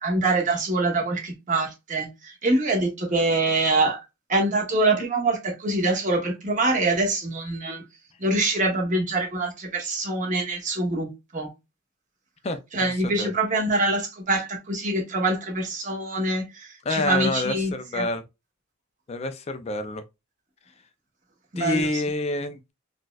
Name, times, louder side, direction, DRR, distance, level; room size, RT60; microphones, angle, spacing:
voice 1, 0.0-4.0 4.3-7.8 8.2-11.5 12.7-18.1 21.5-22.0, right 2 dB, 35° right, 0.9 m, -25 dB
voice 2, 12.4-13.3 16.8-18.2 19.1-20.0 21.6-22.7, left 2 dB, 30° left, 0.3 m, -28 dB
4.0 x 2.3 x 2.3 m
head